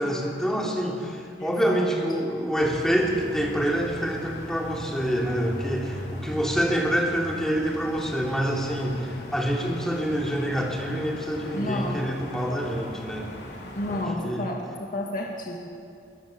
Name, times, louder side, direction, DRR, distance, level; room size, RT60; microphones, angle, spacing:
voice 1, 0.0-13.3 13.9-14.5, equal, 5° left, -2 dB, 3.1 m, -26 dB
voice 2, 1.4-1.9 11.5-12.1 13.8-15.6, left 1 dB, 50° left, -1 dB, 2.1 m, -31 dB
sound 1, 2.6-14.1, left 1 dB, 70° left, 4.0 m, -39 dB
22.0 x 19.5 x 7.2 m, 2.4 s
head